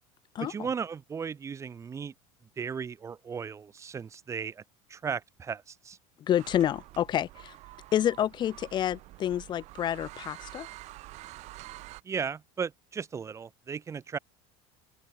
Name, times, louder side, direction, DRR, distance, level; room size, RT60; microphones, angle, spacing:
voice 1, 0.4-2.1 2.6-4.6 4.9-6.0 12.0-14.2, right 6 dB, 20° right, 1.7 m, -36 dB
voice 2, 6.3-7.5 7.9-10.7, left 11 dB, 30° left, 0.9 m, -28 dB
sound 1, 6.4-12.0, right 18 dB, 45° right, 4.2 m, -47 dB
open air
cardioid pair, 155°, 16 cm